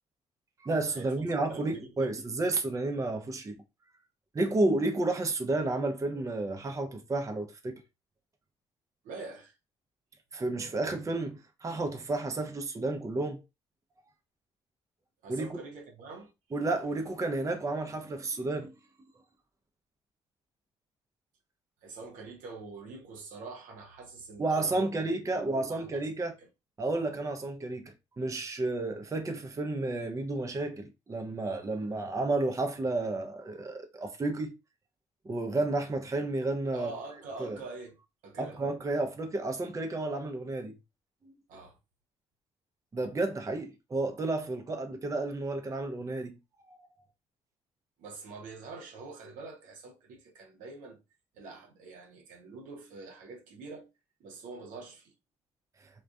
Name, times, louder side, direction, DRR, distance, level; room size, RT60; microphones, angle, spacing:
voice 1, 0.6-3.6 4.3-7.8 10.3-13.4 15.3-15.6 16.5-18.7 24.4-26.3 26.8-34.5 35.2-36.9 37.4-37.6 38.4-40.7 41.2-41.3 42.9-46.4, right 2 dB, 25° right, 0.5 m, -31 dB
voice 2, 1.3-2.2 9.0-9.6 15.2-16.3 21.8-25.1 25.3-26.5 36.7-38.0 38.2-38.6 41.5-41.8 48.0-51.0 51.3-53.9 54.2-55.1, right 3 dB, 70° right, 0.7 m, -45 dB
2.4 x 2.2 x 2.3 m
hypercardioid pair, 50°, 14 cm